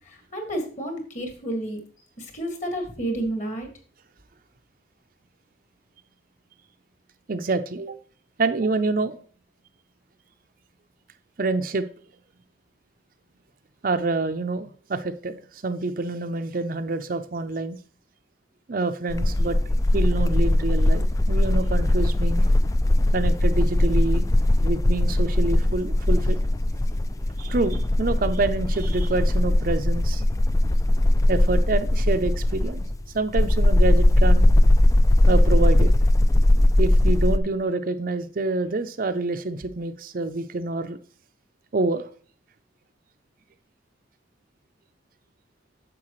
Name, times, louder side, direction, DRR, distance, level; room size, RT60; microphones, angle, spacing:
voice 1, 0.1-1.8 2.2-3.7, right 1 dB, 40° left, 4 dB, 1.9 m, -30 dB
voice 2, 7.3-8.0 8.4-9.2 11.4-11.9 13.8-17.8 18.7-19.6 19.9-22.5 23.1-24.2 24.6-26.4 27.4-30.2 31.3-32.8 33.1-34.5 35.3-35.9 36.8-41.0 41.7-42.1, right 3 dB, 45° right, 8 dB, 0.5 m, -27 dB
sound 1, 19.1-37.4, left 1 dB, 15° left, 0.3 m, -20 dB
9.7 x 6.9 x 3.1 m, 0.43 s
head